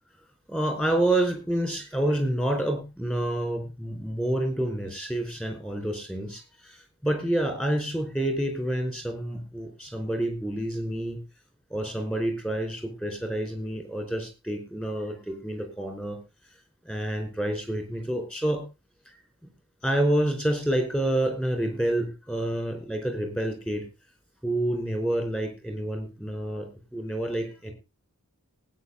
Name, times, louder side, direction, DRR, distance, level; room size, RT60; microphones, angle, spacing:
voice 1, 0.5-6.8 7.0-11.2 11.7-16.2 16.8-18.6 19.4-19.5 19.8-23.9 24.4-27.7, right 1 dB, 5° left, 5 dB, 4.6 m, -28 dB
19.5 x 9.2 x 3.7 m, 0.28 s
head